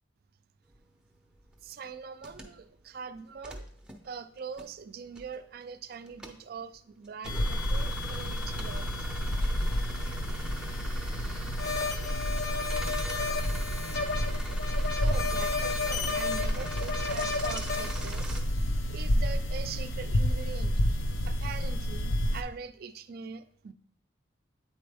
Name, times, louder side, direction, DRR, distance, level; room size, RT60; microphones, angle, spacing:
sound 1, 0.7-18.4, right 2 dB, 5° right, 0.6 m, -44 dB
voice 1, 1.6-3.7 4.0-8.9 14.9-18.3 18.9-20.8 21.2-23.7, right 5 dB, 50° right, 11 dB, 0.4 m, -42 dB
sound 2, 7.2-22.4, equal, 90° left, 0.6 m, -30 dB
sound 3, 11.6-18.0, left 4 dB, 55° left, 0.8 m, -33 dB
8.5 x 4.2 x 3.4 m, 0.63 s
head